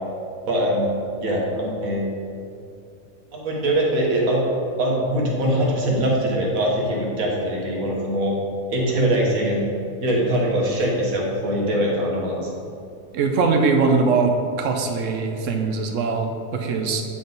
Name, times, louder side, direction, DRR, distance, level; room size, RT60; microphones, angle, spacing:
voice 1, 0.5-0.9 1.2-2.0 3.3-4.4 4.8-8.3 8.7-9.7 10.0-12.5, right 1 dB, 85° right, -3 dB, 1.6 m, -22 dB
voice 2, 13.1-17.0, right 4 dB, 70° right, 3 dB, 0.9 m, -21 dB
8.7 x 3.8 x 3.9 m, 2.5 s
omnidirectional pair, 1.4 m